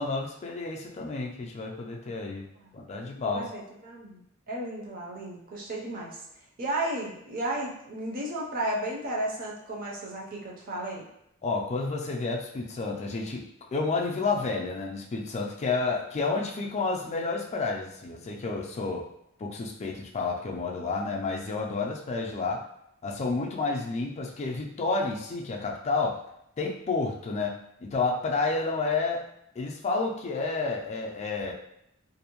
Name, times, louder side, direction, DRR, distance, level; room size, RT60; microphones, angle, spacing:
voice 1, 0.0-2.5 2.7-3.5 11.4-19.0 19.4-22.6 23.0-26.2 26.6-27.5 27.8-29.2 29.6-31.5, left 3 dB, 30° left, 0 dB, 0.3 m, -30 dB
voice 2, 3.2-4.2 4.5-6.2 6.6-11.1, right 1 dB, 40° right, -2 dB, 0.5 m, -33 dB
2.5 x 2.1 x 2.9 m, 0.77 s
head